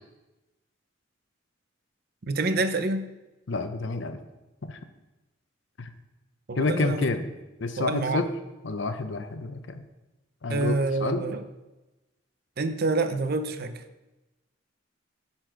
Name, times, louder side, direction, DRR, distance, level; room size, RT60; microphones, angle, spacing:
voice 1, 2.3-3.0 6.5-7.2 7.8-8.2 10.5-11.4 12.6-13.8, right 3 dB, 50° right, 10 dB, 0.6 m, -27 dB
voice 2, 3.5-4.2 4.6-4.8 5.8-5.9 6.5-7.3 7.6-8.3 8.6-9.8 10.4-11.2, left 3 dB, 70° left, 9 dB, 0.7 m, -29 dB
11.0 x 4.3 x 4.5 m, 1.1 s
head